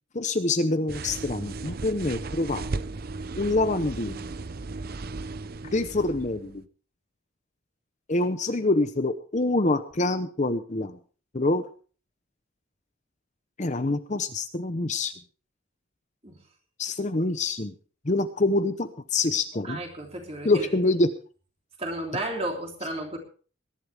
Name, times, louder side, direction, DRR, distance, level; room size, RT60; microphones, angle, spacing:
voice 1, 0.1-2.8 3.4-4.3 5.7-6.6 8.1-11.0 11.3-11.6 13.6-15.1 16.8-17.7 18.0-19.8 20.4-21.1, left 2 dB, 35° left, 10 dB, 0.8 m, -26 dB
sound 1, 0.9-6.6, right 3 dB, 45° right, 0.6 m, -36 dB
voice 2, 19.6-20.7 21.8-23.2, right 1 dB, 30° right, 2 dB, 3.3 m, -33 dB
21.5 x 11.5 x 3.4 m, 0.39 s
head